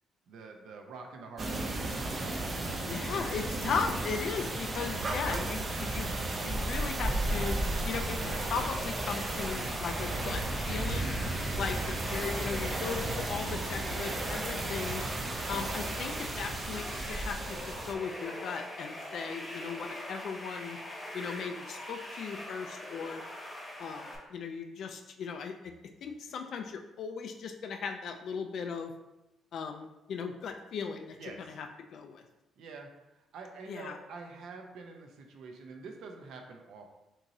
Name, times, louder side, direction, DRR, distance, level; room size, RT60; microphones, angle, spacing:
voice 1, 0.3-2.0 11.5-12.3 31.2-31.6 32.6-37.0, right 4 dB, 70° right, 3 dB, 0.7 m, -47 dB
sound 1, 1.4-17.9, right 2 dB, 30° right, 0.5 m, -34 dB
voice 2, 2.7-6.1 6.4-7.6 7.9-11.1 11.6-11.8 12.1-15.0 15.5-20.8 21.1-23.2 23.8-25.7 26.0-28.9 29.5-31.7 31.9-32.2 33.7-34.0, left 6 dB, 55° left, 4 dB, 0.3 m, -37 dB
sound 2, 8.2-24.2, left 1 dB, 5° left, 1.0 m, -43 dB
5.9 x 3.0 x 2.7 m, 0.96 s
cardioid pair, 155°, 0 cm